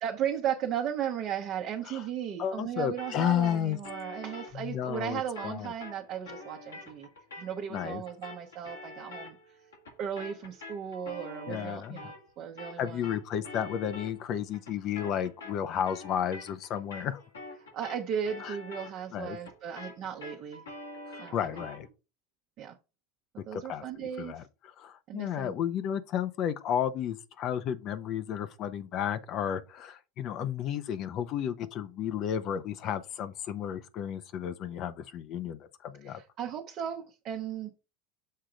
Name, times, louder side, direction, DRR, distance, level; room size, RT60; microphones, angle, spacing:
voice 1, 0.0-7.1 7.4-9.6 10.0-13.2 17.6-20.6 21.2-21.7 22.6-22.8 23.5-24.4 25.1-25.5 36.0-37.9, right 9 dB, 50° right, 1.0 m, -36 dB
voice 2, 2.4-3.8 4.5-5.7 7.7-8.0 11.5-12.0 12.8-17.2 18.4-18.6 19.1-19.4 21.1-21.9 23.5-36.2, left 9 dB, 50° left, 0.7 m, -33 dB
sound 1, 3.0-12.3 12.6-21.9, left 2 dB, 90° left, 2.6 m, -46 dB
6.6 x 3.7 x 4.4 m
hypercardioid pair, 85°, 0 cm